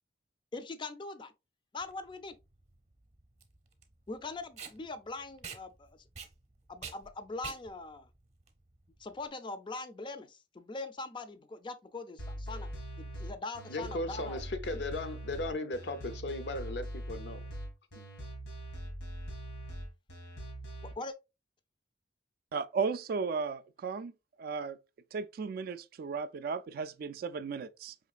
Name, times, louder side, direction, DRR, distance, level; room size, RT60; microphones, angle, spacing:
voice 1, 0.5-1.3 1.7-2.4 4.1-5.9 6.7-8.1 9.0-12.7 13.0-14.4 21.0-21.2, left 3 dB, 30° left, 0.4 m, -42 dB
Packing tape duct tape, 1.8-9.3, right 6 dB, 40° right, 0.7 m, -48 dB
sound 1, 12.2-20.9, right 1 dB, 85° left, 1.8 m, -42 dB
voice 2, 13.7-17.5 18.0-18.1, left 2 dB, 70° left, 0.6 m, -37 dB
voice 3, 22.5-24.1 24.4-24.8 25.1-27.9, right 5 dB, 55° right, 0.3 m, -35 dB
4.9 x 3.1 x 2.4 m
head